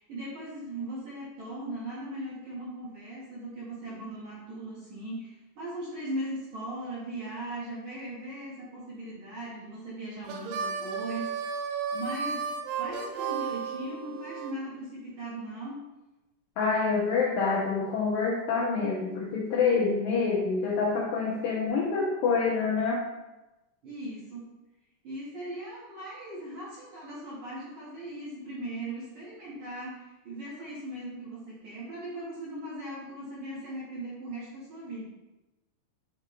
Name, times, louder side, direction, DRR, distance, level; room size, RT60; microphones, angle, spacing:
voice 1, 0.0-11.5 11.9-12.4 12.8-15.8 23.8-24.5 25.0-35.0, right 1 dB, 55° right, -8 dB, 2.2 m, -39 dB
Harmonica, 10.2-14.5, right 6 dB, 85° right, 2.3 m, -33 dB
voice 2, 16.6-23.0, left 4 dB, 90° left, -4 dB, 2.0 m, -27 dB
9.2 x 3.8 x 3.2 m, 1.0 s
omnidirectional pair, 5.3 m